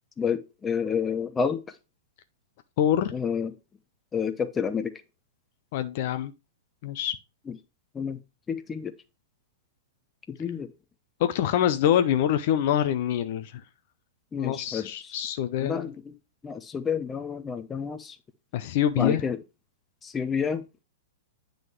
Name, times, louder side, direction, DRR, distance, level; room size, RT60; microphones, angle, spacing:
voice 1, 0.2-1.6 3.1-3.5 4.1-4.9 7.5-7.6 7.9-8.2 8.5-8.9 10.4-10.7 14.3-15.2 15.6-16.1 16.4-18.1 19.0-19.4 20.0-20.8, left 6 dB, 15° left, 0.8 m, -29 dB
voice 2, 2.8-3.1 5.7-6.3 6.8-7.2 11.2-13.6 14.4-15.9 18.5-19.2, left 10 dB, 50° left, 0.6 m, -25 dB
9.3 x 3.9 x 4.5 m
figure-of-eight pair, 105°, 0 cm